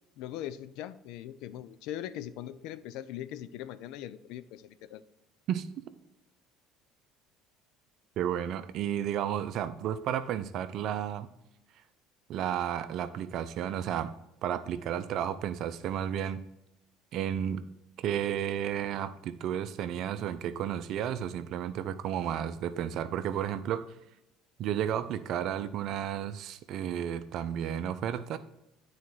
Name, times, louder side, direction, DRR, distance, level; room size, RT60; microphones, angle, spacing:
voice 1, 0.2-5.0, left 12 dB, 70° left, 14 dB, 0.5 m, -40 dB
voice 2, 8.2-11.3 12.3-14.1 14.4-16.4 17.1-17.6 18.0-23.9 24.6-28.4, right 10 dB, 60° right, 13 dB, 0.6 m, -32 dB
9.3 x 4.3 x 4.8 m, 0.84 s
supercardioid pair, 75°, 0 cm